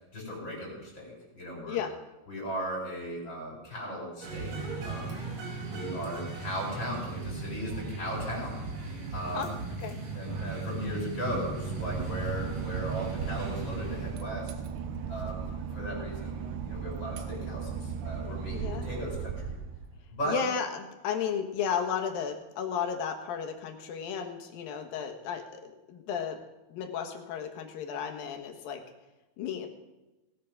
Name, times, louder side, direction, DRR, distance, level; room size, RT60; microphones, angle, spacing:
voice 1, 0.1-1.8 2.3-4.6 4.8-5.2 5.7-8.6 9.1-9.6 10.1-14.5 15.1-19.6 20.1-20.4, equal, 30° left, -2 dB, 5.8 m, -37 dB
sound 1, 4.2-14.4, right 4 dB, 50° right, 3.3 m, -37 dB
Boat Water vehicle / Engine, 11.3-20.3, right 6 dB, 70° right, 2.2 m, -37 dB
voice 2, 18.5-18.9 20.3-26.4 26.7-28.8 29.4-29.7, left 7 dB, 70° left, 5 dB, 3.0 m, -34 dB
18.5 x 8.4 x 6.1 m, 1.0 s
omnidirectional pair, 4.5 m